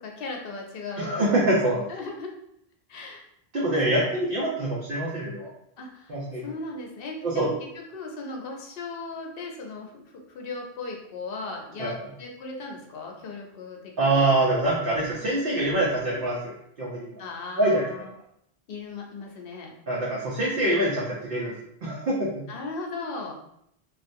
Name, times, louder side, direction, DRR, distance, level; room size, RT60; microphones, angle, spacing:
voice 1, 0.0-1.3 1.9-2.3 2.9-3.2 3.9-4.2 5.8-14.3 17.2-18.1 18.7-19.7 22.5-23.4, left 3 dB, 70° left, 1 dB, 0.8 m, -37 dB
voice 2, 1.0-1.8 3.5-5.5 6.1-6.4 7.2-7.5 11.8-11.9 14.0-17.2 17.6-17.8 19.9-21.5 21.8-22.4, right 1 dB, 60° right, -6 dB, 0.9 m, -25 dB
3.2 x 2.4 x 2.6 m, 0.75 s
omnidirectional pair, 1.0 m